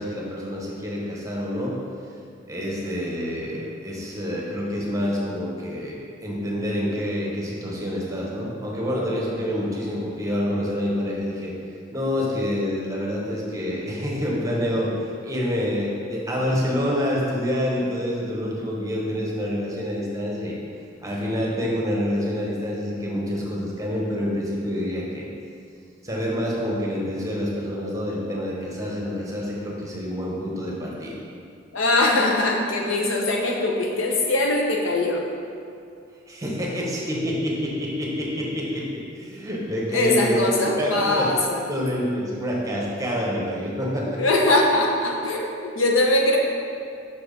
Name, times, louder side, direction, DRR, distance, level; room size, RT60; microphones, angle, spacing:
voice 1, 0.0-1.7 2.5-11.5 11.9-20.6 21.0-25.3 26.0-31.2 36.3-38.9 39.2-40.4 40.8-41.3 41.7-44.2, equal, 15° right, -3 dB, 1.0 m, -27 dB
voice 2, 31.7-35.2 39.9-41.6 44.1-46.4, left 2 dB, 80° left, 0 dB, 0.8 m, -21 dB
5.6 x 4.4 x 5.1 m, 2.4 s
head